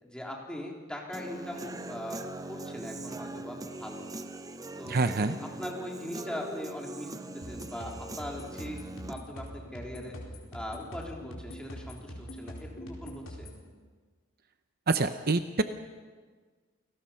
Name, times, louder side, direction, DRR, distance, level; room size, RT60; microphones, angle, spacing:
voice 1, 0.0-4.1 4.8-5.0 5.4-8.8 9.1-10.1 10.5-13.5, left 1 dB, 5° left, -1 dB, 3.4 m, -40 dB
Human voice / Guitar, 1.1-9.1, right 2 dB, 15° right, 0.7 m, -41 dB
voice 2, 4.9-5.4 14.9-15.6, right 3 dB, 50° right, 9 dB, 0.8 m, -26 dB
sound 1, 7.4-13.6, equal, 70° left, 4.6 m, -43 dB
28.5 x 19.0 x 5.7 m, 1.5 s
head